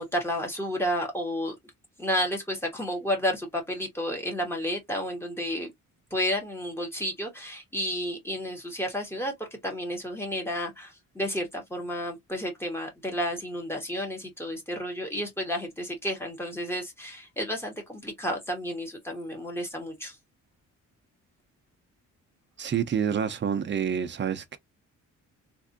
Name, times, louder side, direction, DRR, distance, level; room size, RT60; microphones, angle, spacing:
voice 1, 0.0-1.5 2.0-5.7 6.1-20.2, equal, 5° left, 1.5 m, -31 dB
voice 2, 22.6-24.6, right 8 dB, 35° right, 0.6 m, -28 dB
3.4 x 2.6 x 2.5 m
cardioid pair, 130°, 32 cm